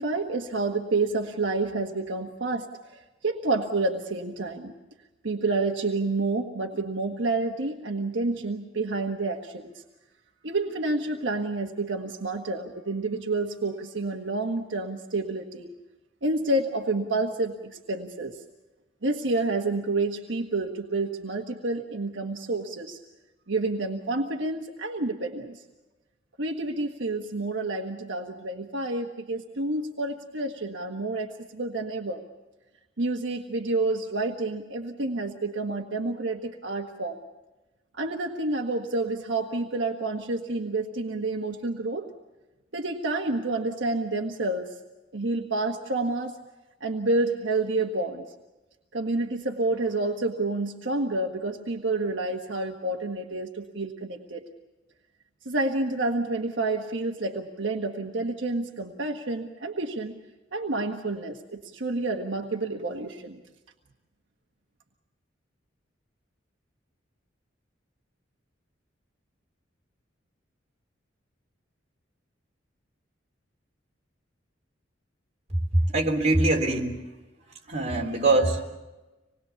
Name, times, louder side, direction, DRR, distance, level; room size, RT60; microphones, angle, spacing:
voice 1, 0.0-4.7 5.2-9.7 10.4-15.7 16.2-18.4 19.0-23.0 23.5-25.6 26.4-32.2 33.0-37.2 38.0-42.1 42.7-44.7 45.1-46.3 46.8-48.2 48.9-54.4 55.4-60.2 60.5-63.4, right 2 dB, 75° right, 2 dB, 1.5 m, -29 dB
voice 2, 75.5-77.0 77.7-78.8, right 2 dB, 40° right, 0 dB, 3.4 m, -23 dB
26.0 x 20.5 x 7.1 m, 1.1 s
head